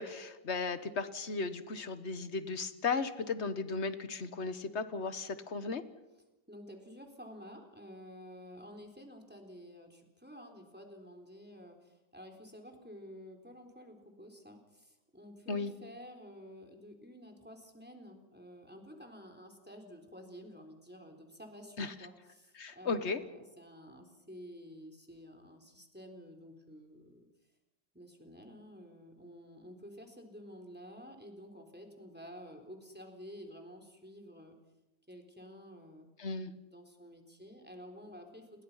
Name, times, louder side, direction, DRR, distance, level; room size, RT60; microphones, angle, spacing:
voice 1, 0.0-5.8 15.5-15.7 21.8-21.9 22.6-23.2 36.2-36.5, left 4 dB, 40° left, 11 dB, 1.4 m, -35 dB
voice 2, 6.5-27.3 27.9-34.6 35.1-36.1 36.6-38.5, equal, 5° right, 4 dB, 3.8 m, -51 dB
29.5 x 22.0 x 5.7 m, 1.0 s
omnidirectional pair, 2.0 m